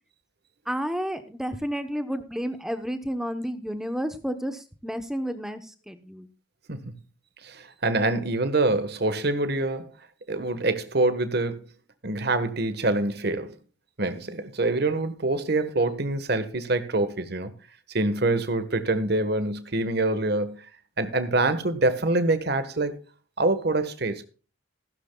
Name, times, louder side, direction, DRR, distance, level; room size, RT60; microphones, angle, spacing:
voice 1, 0.7-6.3, equal, ahead, 0.9 m, -31 dB
voice 2, 7.4-9.9 10.3-11.7 12.0-13.5 14.0-17.5 17.9-20.6 21.0-23.0 23.4-24.2, right 2 dB, 50° right, 1.4 m, -25 dB
15.0 x 12.5 x 2.3 m
head